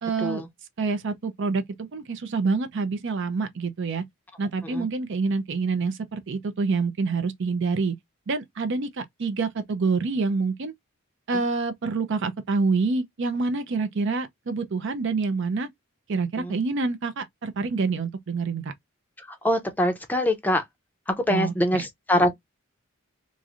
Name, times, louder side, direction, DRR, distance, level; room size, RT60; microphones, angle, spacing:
voice 1, 0.0-0.4 0.8-4.0 4.4-8.0 8.3-10.7 11.3-15.7 16.1-18.7 21.3-21.8, right 4 dB, 60° right, 0.5 m, -27 dB
voice 2, 19.4-20.6 21.1-22.3, left 1 dB, 10° left, 0.5 m, -24 dB
3.0 x 2.5 x 2.4 m
head